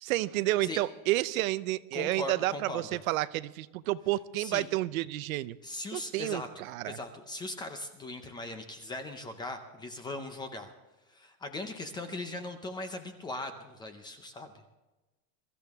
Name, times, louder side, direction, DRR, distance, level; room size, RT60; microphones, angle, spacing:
voice 1, 0.0-5.6 5.9-7.0, right 16 dB, 85° right, 16 dB, 0.8 m, -30 dB
voice 2, 1.9-3.0 4.4-4.7 5.6-6.5 6.8-10.7 11.1-14.5, left 2 dB, 10° left, 7 dB, 0.5 m, -39 dB
23.0 x 14.0 x 3.5 m, 1.1 s
supercardioid pair, 175°, 40 cm